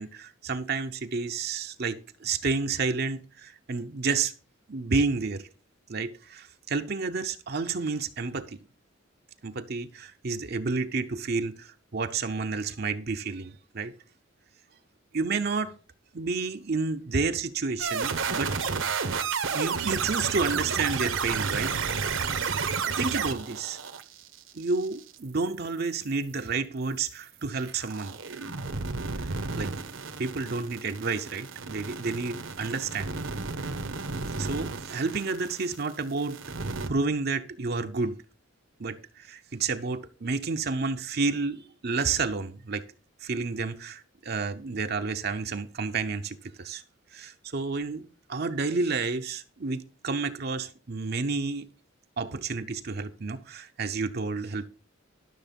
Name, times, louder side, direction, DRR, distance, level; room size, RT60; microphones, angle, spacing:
voice 1, 0.0-4.3 4.7-5.5 5.9-8.6 9.4-13.9 15.1-15.7 16.1-18.5 19.5-21.7 23.0-23.8 24.5-28.2 29.2-29.3 29.6-29.7 30.2-33.2 33.6-33.8 34.4-36.4 36.8-38.2 38.8-42.9 43.2-46.8 47.1-51.7 52.2-54.7, right 4 dB, 50° right, 0.7 m, -30 dB
sound 1, 17.8-25.1 27.6-35.9 36.2-36.9, right 5 dB, 75° right, 1.1 m, -32 dB
12.0 x 6.6 x 5.3 m
head